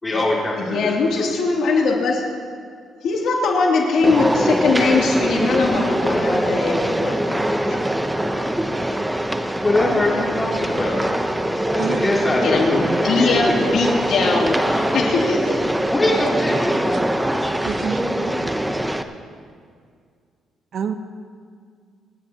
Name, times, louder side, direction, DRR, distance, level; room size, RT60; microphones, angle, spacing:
voice 1, 0.0-0.9 9.6-11.0 11.7-13.6 15.9-16.7, left 2 dB, 20° left, -4 dB, 4.0 m, -22 dB
voice 2, 0.6-2.2 3.0-7.8 12.4-15.5, left 4 dB, 75° left, -2 dB, 2.8 m, -21 dB
sound 1, 4.0-19.0, right 1 dB, 10° right, 0.8 m, -22 dB
voice 3, 11.8-12.1 16.9-17.0 17.6-18.5 20.7-20.9, right 6 dB, 65° right, 7 dB, 1.0 m, -28 dB
28.0 x 10.5 x 2.9 m, 2.1 s
cardioid pair, 90°, 0 cm